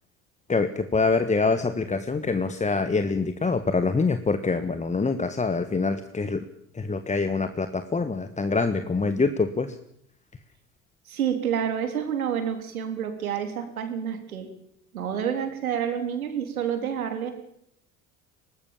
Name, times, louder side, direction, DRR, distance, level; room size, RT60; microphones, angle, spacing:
voice 1, 0.5-6.4 6.7-9.8, left 4 dB, 15° left, 10 dB, 1.5 m, -25 dB
voice 2, 11.1-14.5 14.9-17.3, right 8 dB, 80° right, 7 dB, 3.7 m, -28 dB
24.5 x 19.0 x 7.2 m, 0.73 s
hypercardioid pair, 70°, 42 cm